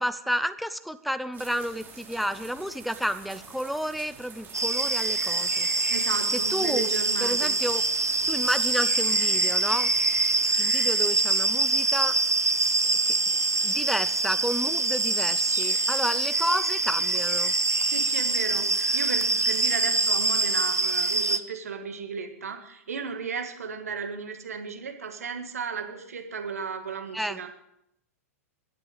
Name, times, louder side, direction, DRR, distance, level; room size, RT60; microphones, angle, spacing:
voice 1, 0.0-5.7 6.5-6.9 7.2-7.8 8.3-9.9 10.6-12.2 13.1-13.2 13.6-17.5 27.1-27.4, equal, ahead, 12 dB, 0.7 m, -31 dB
sound 1, 1.3-10.5, right 5 dB, 25° right, 4.6 m, -47 dB
sound 2, 4.5-21.4, right 3 dB, 90° right, 0.7 m, -25 dB
voice 2, 5.9-7.5 17.8-27.5, right 5 dB, 70° right, 6 dB, 1.8 m, -35 dB
23.5 x 9.5 x 5.0 m, 0.79 s
figure-of-eight pair, 100°, 8 cm